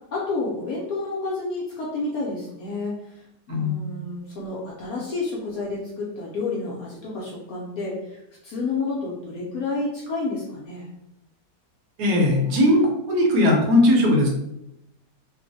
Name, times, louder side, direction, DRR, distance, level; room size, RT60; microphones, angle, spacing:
voice 1, 0.1-10.9, left 3 dB, 70° left, -4 dB, 0.9 m, -30 dB
voice 2, 12.0-14.3, left 1 dB, 70° right, 0 dB, 1.2 m, -19 dB
3.0 x 2.1 x 2.6 m, 0.83 s
omnidirectional pair, 1.8 m